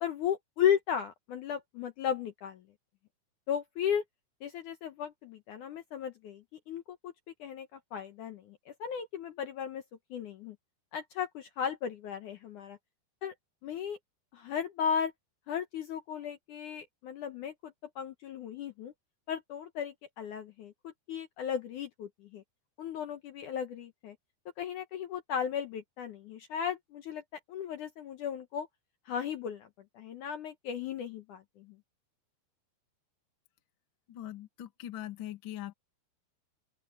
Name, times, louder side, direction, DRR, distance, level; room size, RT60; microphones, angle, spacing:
voice 1, 0.0-2.6 3.5-4.0 4.4-7.1 7.4-9.8 10.1-10.6 10.9-12.8 13.2-13.3 13.6-14.0 14.3-15.1 15.5-18.9 19.3-22.4 22.8-24.2 24.6-27.2 27.5-28.7 29.1-29.7 29.9-31.8, left 8 dB, 65° left, 2.1 m, -35 dB
voice 2, 34.1-35.7, left 12 dB, 50° left, 1.5 m, -41 dB
open air
omnidirectional pair, 4.8 m